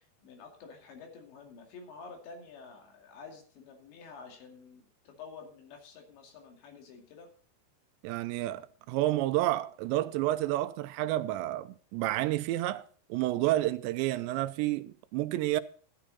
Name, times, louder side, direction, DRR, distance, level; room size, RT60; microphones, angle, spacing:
voice 1, 0.0-7.3, left 5 dB, 90° left, 4.7 m, -49 dB
voice 2, 8.0-12.8 13.1-15.6, right 15 dB, 85° right, 2.9 m, -30 dB
14.0 x 10.5 x 4.1 m
omnidirectional pair, 5.0 m